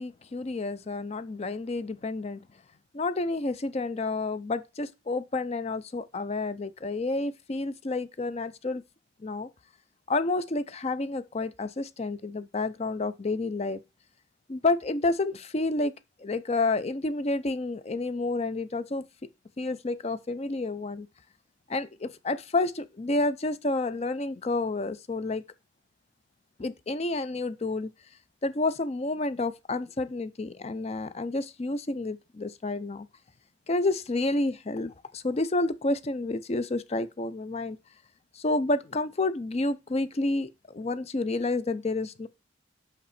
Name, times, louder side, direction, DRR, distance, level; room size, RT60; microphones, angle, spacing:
voice 1, 0.0-2.4 2.9-8.8 9.2-9.5 10.1-13.8 14.5-15.9 16.2-19.0 19.6-21.1 21.7-25.4 26.6-27.9 28.4-33.1 33.7-37.8 38.3-42.3, left 2 dB, 30° left, 0.5 m, -30 dB
5.6 x 5.4 x 4.2 m
head